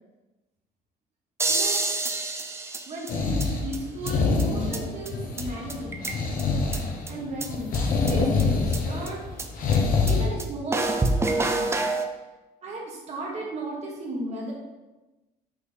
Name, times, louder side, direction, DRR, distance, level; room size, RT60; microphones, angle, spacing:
sound 1, 1.4-3.5 3.7-3.8 4.1-4.2 4.4-4.5 4.7-4.8 5.1-5.2 5.4-5.5 5.7-6.4 6.7-6.8 7.1-7.2 7.4-7.5 7.7-7.8 8.1-8.2 8.4-8.5 8.7-8.8 9.1-9.2 9.4-9.5 9.7-9.8 10.1-10.2 10.4-10.5 10.7-12.1, right 2 dB, 15° right, 0.5 m, -27 dB
voice 1, 1.5-1.9 2.5-6.1 7.1-9.2 10.0-11.8 12.6-14.5, right 2 dB, 40° right, -3 dB, 1.4 m, -35 dB
sound 2, 3.1-10.3, left 4 dB, 55° left, 1.1 m, -26 dB
6.2 x 4.0 x 3.9 m, 1.1 s
cardioid pair, 110°, 17 cm